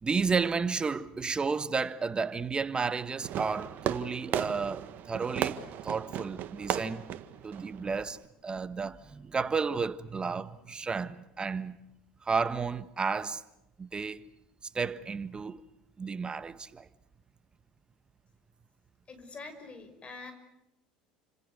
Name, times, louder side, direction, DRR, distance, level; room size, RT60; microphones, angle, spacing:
voice 1, 0.0-7.0 7.4-11.8 12.2-13.4 13.8-14.2 14.7-15.6 16.0-16.9, right 5 dB, 25° right, 1.4 m, -32 dB
Fireworks, 3.2-8.3, right 11 dB, 50° right, 1.6 m, -35 dB
voice 2, 19.1-20.3, left 3 dB, 30° left, 5.5 m, -45 dB
29.0 x 26.5 x 6.8 m
hypercardioid pair, 75°, 4 cm